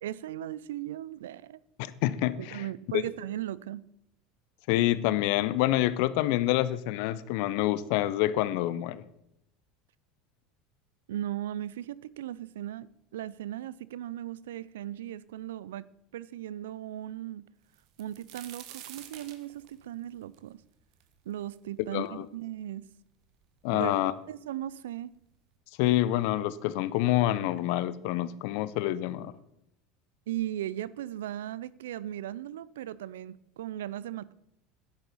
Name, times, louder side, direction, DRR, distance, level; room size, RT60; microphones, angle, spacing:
voice 1, 0.0-1.6 2.4-3.8 11.1-12.9 13.1-15.9 16.1-17.5 18.0-20.6 21.3-22.9 23.7-25.1 30.3-34.3, right 12 dB, 80° right, 0.4 m, -37 dB
voice 2, 1.8-2.6 4.7-9.0 21.9-22.3 23.6-24.1 25.8-29.3, left 14 dB, 65° left, 0.6 m, -27 dB
sound 1, 17.7-21.6 22.1-22.2 22.9-23.0 23.3-23.9 24.8-24.9 25.3-25.5, right 11 dB, 60° right, 1.2 m, -48 dB
11.0 x 9.7 x 4.1 m
hypercardioid pair, 80°, 0 cm